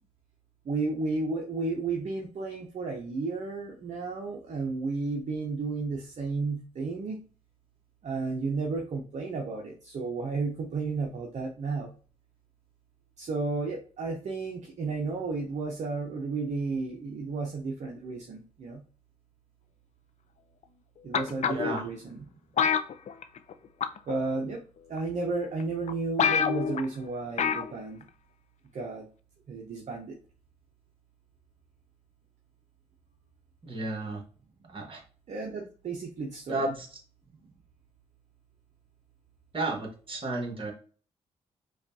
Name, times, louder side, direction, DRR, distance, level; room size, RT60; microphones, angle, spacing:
voice 1, 0.6-7.2 8.0-11.9 13.2-18.8 21.0-22.3 24.1-24.6 24.9-28.1 28.7-29.1 29.5-30.2 35.3-36.7 37.4-37.5, right 3 dB, 55° right, 1 dB, 0.7 m, -33 dB
sound 1, 21.1-21.8 22.6-23.5 23.8-24.1 25.0-25.1 25.6-25.7 25.9-26.0 26.2-26.8 27.4-27.7 28.0-28.1, left 7 dB, 55° left, 0.5 m, -26 dB
voice 2, 21.4-21.9 33.6-34.2 34.7-35.0 36.5-36.9 39.5-40.7, right 2 dB, 40° right, 1 dB, 1.5 m, -32 dB
5.0 x 2.4 x 2.6 m, 0.39 s
supercardioid pair, 60°, 14 cm